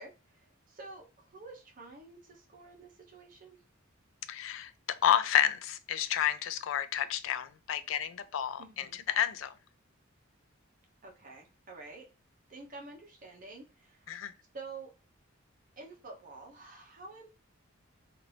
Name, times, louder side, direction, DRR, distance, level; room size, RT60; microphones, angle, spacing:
voice 1, 0.0-3.6 8.6-9.0 11.0-12.1 12.5-14.1 14.5-14.9 15.8-17.4, right 3 dB, 40° right, 0.8 m, -49 dB
voice 2, 4.3-9.5 14.1-14.3, left 10 dB, 65° left, 0.3 m, -30 dB
2.9 x 2.5 x 3.1 m
head